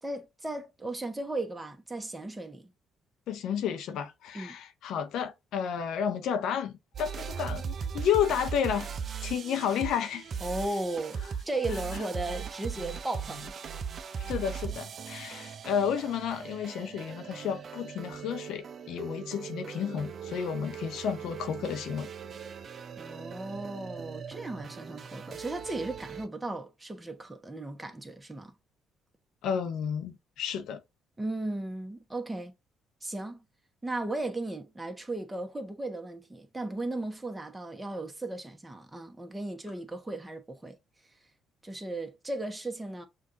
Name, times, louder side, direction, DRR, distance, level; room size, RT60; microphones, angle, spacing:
voice 1, 0.0-2.7 4.3-4.6 10.4-11.2 11.5-13.5 23.0-28.5 31.2-32.5 33.0-33.4 33.8-40.8 41.6-43.1, right 2 dB, 15° right, 1.1 m, -36 dB
voice 2, 3.3-8.9 9.2-10.3 11.9-12.0 14.2-22.1 29.4-30.8, left 8 dB, 70° left, 0.7 m, -31 dB
sound 1, 6.9-26.3, right 6 dB, 50° right, 0.4 m, -39 dB
6.3 x 2.5 x 2.7 m
hypercardioid pair, 55°, 0 cm